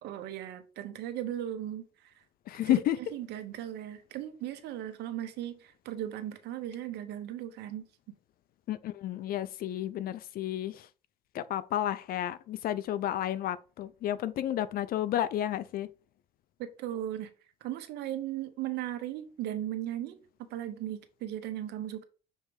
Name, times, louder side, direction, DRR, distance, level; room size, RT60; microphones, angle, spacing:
voice 1, 0.0-2.1 2.7-7.9 16.6-17.3 17.6-22.0, right 12 dB, 80° right, 1.1 m, -37 dB
voice 2, 2.5-3.0 8.7-10.9 11.3-15.9, left 12 dB, 60° left, 0.5 m, -31 dB
6.5 x 3.3 x 4.7 m
cardioid pair, 110°, 17 cm